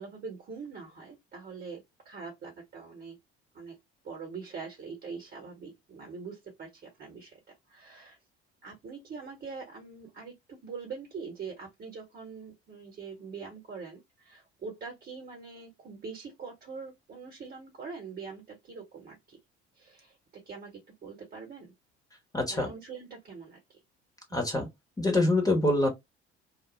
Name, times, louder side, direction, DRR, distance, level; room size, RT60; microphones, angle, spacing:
voice 1, 0.0-3.2 3.5-3.7 4.0-7.4 7.7-8.2 8.6-19.4 19.7-20.2 20.5-20.7 21.0-21.7 22.5-23.8, right 5 dB, 30° right, 1.0 m, -43 dB
voice 2, 22.3-22.7 24.3-24.7 25.0-25.9, left 2 dB, 10° left, 0.9 m, -25 dB
2.4 x 2.0 x 3.0 m
figure-of-eight pair, 55°, 33 cm